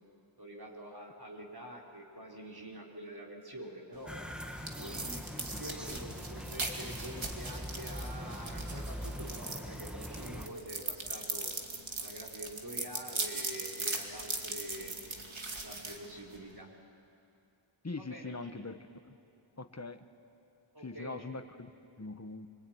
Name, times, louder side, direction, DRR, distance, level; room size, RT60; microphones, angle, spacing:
voice 1, 0.4-4.1 4.7-11.5 12.0-15.0 15.5-16.7 18.1-18.3 20.7-21.2, right 1 dB, 50° right, -2 dB, 4.0 m, -46 dB
sound 1, 3.9-16.6, right 2 dB, 70° right, 2.6 m, -40 dB
sound 2, 4.1-10.5, equal, ahead, 1.5 m, -42 dB
voice 2, 17.8-19.2 19.6-20.1 20.8-22.5, left 3 dB, 30° left, 9 dB, 1.3 m, -43 dB
25.0 x 24.0 x 9.4 m, 2.6 s
wide cardioid pair, 45°, 49 cm